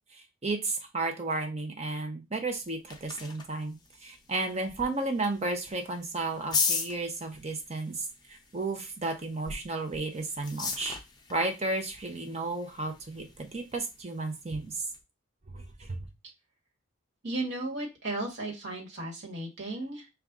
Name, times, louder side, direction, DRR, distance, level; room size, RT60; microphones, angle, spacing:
voice 1, 0.1-3.8 4.0-11.0 11.3-14.8 15.5-16.0, right 2 dB, 30° right, 4 dB, 0.6 m, -33 dB
sound 1, 2.4-15.0, left 4 dB, 20° left, 0.5 m, -39 dB
voice 2, 17.2-20.1, right 2 dB, 55° right, -1 dB, 1.4 m, -35 dB
5.0 x 2.3 x 3.5 m, 0.25 s
head